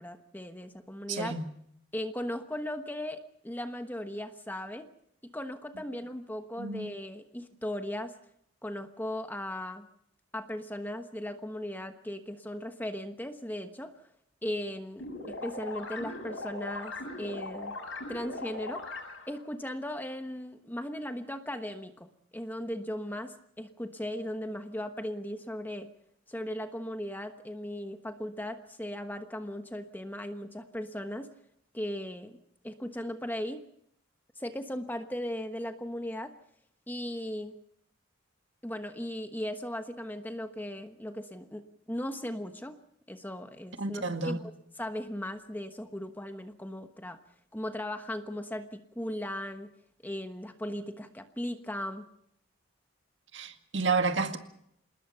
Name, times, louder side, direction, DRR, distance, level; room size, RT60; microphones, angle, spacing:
voice 1, 0.0-1.4 1.9-4.9 5.3-8.1 8.6-9.9 10.3-13.9 14.4-17.7 18.1-18.8 19.3-25.9 26.3-31.3 31.7-32.4 32.6-33.6 34.4-36.3 36.9-37.5 38.6-41.6 41.9-42.8 43.1-44.4 44.8-47.2 47.5-49.7 50.0-52.0, left 1 dB, 10° left, 1.1 m, -37 dB
voice 2, 1.1-1.5 6.6-6.9 43.8-44.4 53.3-54.4, right 4 dB, 60° right, 2.0 m, -30 dB
sound 1, 15.0-19.4, left 2 dB, 70° left, 7.7 m, -39 dB
27.0 x 20.0 x 5.7 m
head